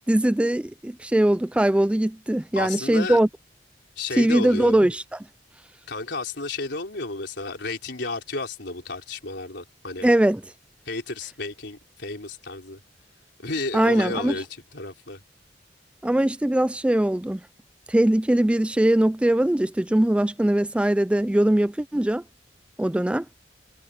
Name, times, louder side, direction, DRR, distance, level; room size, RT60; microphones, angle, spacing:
voice 1, 0.1-3.3 4.2-5.2 10.0-10.4 13.7-14.4 16.0-17.4 17.9-22.2 22.8-23.3, right 1 dB, 5° right, 0.3 m, -21 dB
voice 2, 2.6-3.2 4.0-4.8 5.9-10.1 10.9-12.8 13.4-15.2, left 3 dB, 70° left, 4.5 m, -32 dB
head